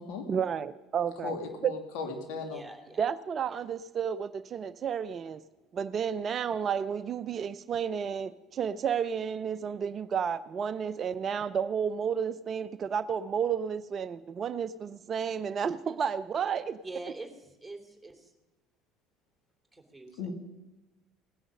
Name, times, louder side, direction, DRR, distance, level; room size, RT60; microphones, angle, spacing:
voice 1, 0.3-1.3 1.6-1.7 3.0-5.4 5.7-16.8, right 7 dB, 40° right, 0.5 m, -31 dB
voice 2, 1.2-2.6 20.2-20.3, left 4 dB, 65° left, 2.4 m, -36 dB
voice 3, 2.5-3.0 3.5-3.6 16.8-18.3 19.7-20.3, right 2 dB, ahead, 3.2 m, -45 dB
18.5 x 10.0 x 6.4 m
figure-of-eight pair, 60°, 0 cm